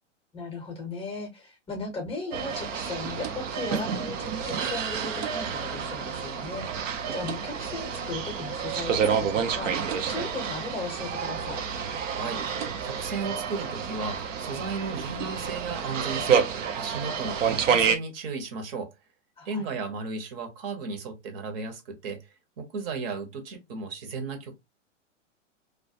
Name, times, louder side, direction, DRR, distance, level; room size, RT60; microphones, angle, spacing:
voice 1, 0.3-11.6 19.4-19.7, left 3 dB, 15° left, 0.6 m, -37 dB
sound 1, 2.3-18.0, right 6 dB, 85° right, 0.5 m, -29 dB
voice 2, 12.1-18.9 19.4-24.5, right 4 dB, 50° right, 0.8 m, -35 dB
2.3 x 2.1 x 2.6 m
hypercardioid pair, 115°, 37 cm